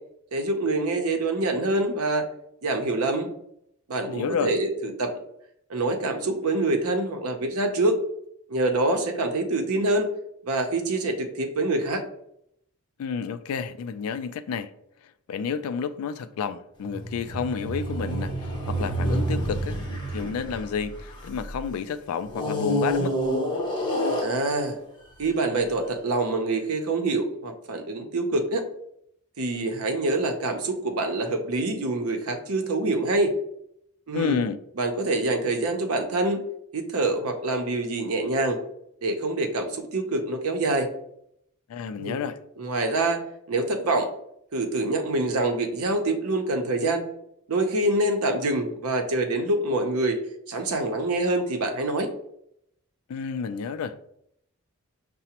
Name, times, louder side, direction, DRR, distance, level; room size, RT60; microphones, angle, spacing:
voice 1, 0.3-2.3 2.6-3.3 3.9-5.2 5.7-8.0 8.5-10.1 10.4-12.0 24.2-24.8 25.2-28.6 29.4-33.3 34.1-34.4 34.8-36.4 36.7-38.6 39.0-40.9 42.0-42.2 42.6-43.2 43.5-44.1 44.5-47.0 47.5-50.2 50.5-52.1, right 2 dB, 85° right, 0.6 m, -25 dB
voice 2, 4.1-4.5 13.0-14.7 15.3-19.8 20.1-23.2 34.1-34.6 41.7-42.4 53.1-54.0, left 6 dB, 75° left, 0.3 m, -30 dB
sound 1, 16.9-21.6 22.3-24.8 25.5-25.6, equal, 20° left, 0.8 m, -28 dB
5.7 x 2.1 x 2.8 m
head